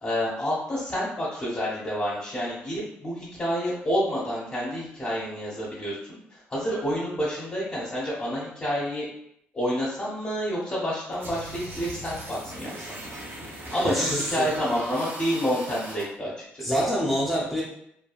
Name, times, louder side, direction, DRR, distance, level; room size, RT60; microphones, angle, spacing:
voice 1, 0.0-9.0 9.5-12.9 13.7-16.7, equal, 35° left, -8 dB, 1.1 m, -29 dB
sound 1, 11.2-16.0, right 1 dB, 50° right, 0.9 m, -39 dB
voice 2, 13.8-14.5 16.6-17.6, equal, 10° left, -7 dB, 0.9 m, -26 dB
3.4 x 2.2 x 2.3 m, 0.76 s
hypercardioid pair, 50°, 6 cm